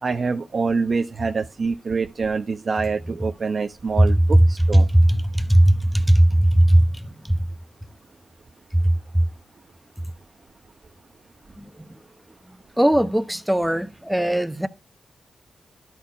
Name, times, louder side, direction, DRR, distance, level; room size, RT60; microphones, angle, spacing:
voice 1, 0.0-4.9, right 4 dB, 55° right, 0.9 m, -25 dB
voice 2, 4.7-7.5 8.7-9.2 11.6-11.9 12.8-14.7, right 1 dB, 5° right, 1.1 m, -18 dB
12.5 x 4.5 x 5.3 m
cardioid pair, 60°, 0 cm